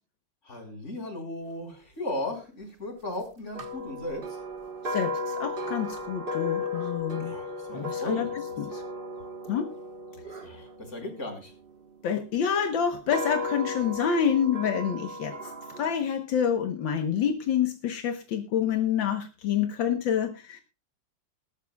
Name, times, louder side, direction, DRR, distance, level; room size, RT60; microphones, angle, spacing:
voice 1, 0.4-4.4 7.2-8.4 10.3-11.5, left 1 dB, 40° left, 4 dB, 4.9 m, -36 dB
sound 1, 3.5-11.7 12.4-15.9, left 2 dB, 30° right, 1.5 m, -35 dB
voice 2, 4.8-7.3 7.7-8.3 8.6-8.8 9.5-9.7 12.0-15.5 15.8-20.6, left 8 dB, 80° left, 6 dB, 1.9 m, -27 dB
20.5 x 12.5 x 2.3 m, 0.32 s
omnidirectional pair, 2.0 m